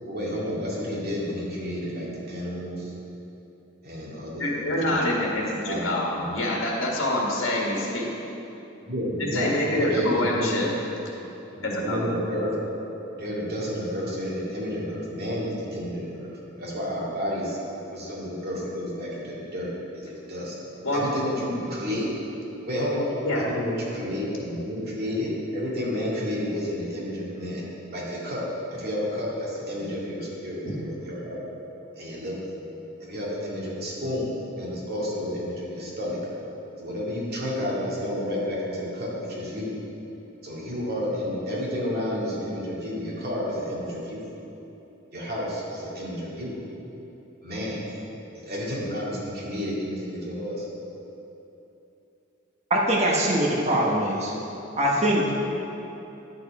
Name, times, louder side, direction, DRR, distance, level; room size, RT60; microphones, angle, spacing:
voice 1, 0.0-2.9 3.8-4.9 5.3-6.4 8.9-9.5 9.8-10.6 11.6-12.5 13.1-17.6 17.9-19.7 19.9-20.6 20.9-22.2 22.6-23.1 23.4-28.4 28.7-31.4 32.0-32.5 33.0-36.2 36.8-39.7 40.4-44.2 45.1-46.6 47.4-47.8 48.4-50.7, equal, 50° right, -6 dB, 2.4 m, -31 dB
voice 2, 4.4-8.1 9.2-10.8 11.6-12.2 20.8-21.1 23.2-23.4 30.6-30.8, left 1 dB, 70° left, -3 dB, 1.9 m, -26 dB
voice 3, 52.7-54.3 54.8-55.3, right 1 dB, 35° right, -3 dB, 1.1 m, -22 dB
10.5 x 7.0 x 4.8 m, 3.0 s
head